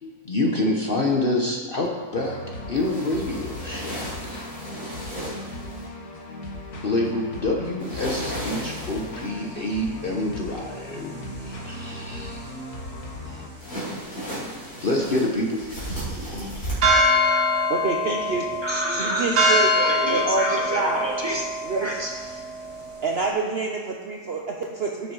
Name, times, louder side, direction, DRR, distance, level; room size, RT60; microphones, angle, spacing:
voice 1, 0.0-2.4 2.7-4.4 6.8-12.5 13.2-13.4 14.8-15.6 16.1-16.5, left 2 dB, 45° left, 0 dB, 0.9 m, -27 dB
sound 1, 2.1-13.5, left 1 dB, 85° left, 1.9 m, -37 dB
sound 2, 2.7-5.8 7.8-9.3 13.6-16.7, right 1 dB, 65° left, 3.7 m, -35 dB
sound 3, 16.8-23.3, left 1 dB, 75° right, 2.1 m, -24 dB
voice 2, 17.7-18.5 19.0-19.7 20.1-21.1 21.6-21.9 23.0-25.1, right 4 dB, 50° right, 0 dB, 0.9 m, -27 dB
voice 3, 18.6-21.4 21.8-22.4, right 1 dB, 15° right, -2 dB, 1.5 m, -29 dB
12.5 x 6.4 x 4.7 m, 1.5 s
omnidirectional pair, 1.6 m